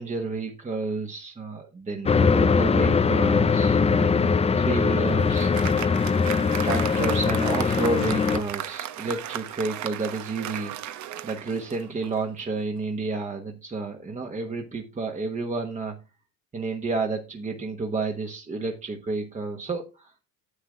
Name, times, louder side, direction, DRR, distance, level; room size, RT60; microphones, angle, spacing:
voice 1, 0.0-5.9 6.6-10.7 11.2-16.0 16.5-20.1, right 3 dB, 20° right, 2 dB, 1.2 m, -31 dB
sound 1, 2.1-8.4, left 5 dB, 15° left, 0.6 m, -21 dB
Applause, 4.8-12.3, right 11 dB, 50° right, 1.0 m, -36 dB
9.8 x 8.0 x 3.7 m, 0.30 s
cardioid pair, 120°, 36 cm